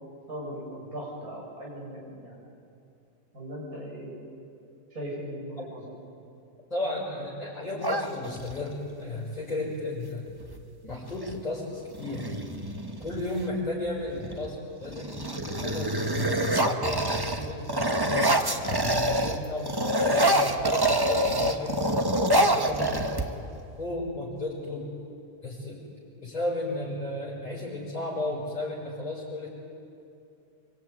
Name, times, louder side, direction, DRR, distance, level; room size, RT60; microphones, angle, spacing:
voice 1, 0.3-2.4 3.3-4.1 4.9-5.8 18.0-18.3 22.7-22.9, equal, 55° right, -4 dB, 8.2 m, -38 dB
voice 2, 6.7-10.3 10.8-12.3 13.0-17.9 18.7-23.2 23.8-24.9 25.4-25.8 26.2-29.5, left 2 dB, 20° left, -6 dB, 6.1 m, -34 dB
sound 1, 7.8-8.7 10.4-10.6 10.9-11.4 11.9-13.5 14.1-14.5 14.8-19.4 19.7-23.6, right 1 dB, 15° right, 1.2 m, -26 dB
25.0 x 24.5 x 9.6 m, 2.6 s
omnidirectional pair, 1.9 m